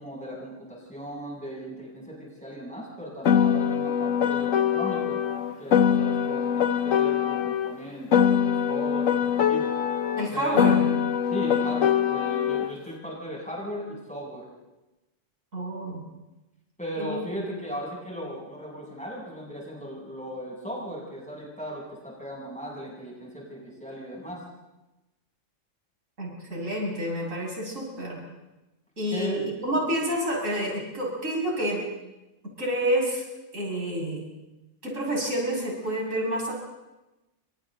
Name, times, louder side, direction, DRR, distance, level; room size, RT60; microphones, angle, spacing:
voice 1, 0.0-5.2 5.6-8.1 8.4-9.7 10.3-10.9 11.3-14.4 16.8-24.4 29.1-29.4, equal, 5° left, -5 dB, 7.9 m, -37 dB
Piano, 3.2-7.7 8.1-12.7, left 8 dB, 85° left, 1.4 m, -23 dB
voice 2, 10.2-10.8 15.5-16.0 17.0-17.2 26.2-28.2 29.0-31.8 32.6-33.2 33.5-34.3 34.8-36.5, equal, 80° right, -2 dB, 7.1 m, -28 dB
29.5 x 26.0 x 4.0 m, 1.0 s
omnidirectional pair, 1.3 m